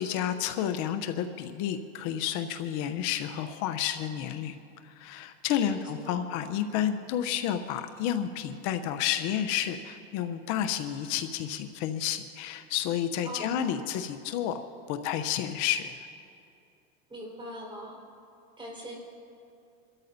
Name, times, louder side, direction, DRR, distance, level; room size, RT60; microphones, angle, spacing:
voice 1, 0.0-4.6 4.9-14.6 14.9-16.1, left 10 dB, 65° left, 8 dB, 0.8 m, -30 dB
voice 2, 5.6-6.2 13.2-13.9 17.1-18.0 18.6-19.0, equal, 15° right, -2 dB, 4.4 m, -42 dB
28.0 x 13.0 x 2.7 m, 2.6 s
supercardioid pair, 110°, 32 cm